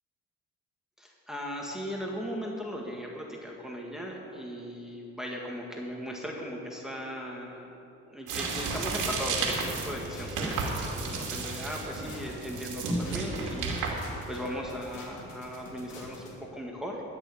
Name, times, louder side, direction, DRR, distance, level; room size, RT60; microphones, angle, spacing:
voice 1, 1.0-7.8 8.1-13.7 14.3-17.0, equal, ahead, -2 dB, 1.8 m, -38 dB
sound 1, 8.3-14.7, right 3 dB, 85° right, 2.6 m, -33 dB
sound 2, 8.7-16.3, left 2 dB, 80° left, 3.0 m, -47 dB
13.5 x 6.7 x 9.7 m, 2.8 s
cardioid pair, 90°, 30 cm